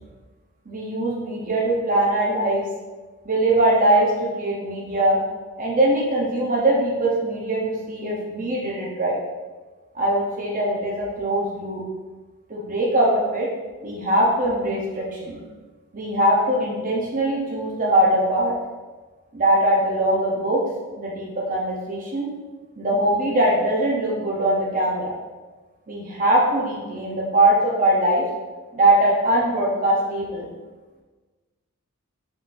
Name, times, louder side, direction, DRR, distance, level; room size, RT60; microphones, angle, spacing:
voice 1, 0.7-2.7 3.3-5.2 5.6-9.2 9.9-11.8 12.5-13.5 13.8-15.4 15.9-18.5 19.3-20.6 21.0-22.3 22.8-25.1 25.9-28.2 28.7-30.5, right 1 dB, 40° right, -3 dB, 0.7 m, -21 dB
4.1 x 3.7 x 2.5 m, 1.3 s
head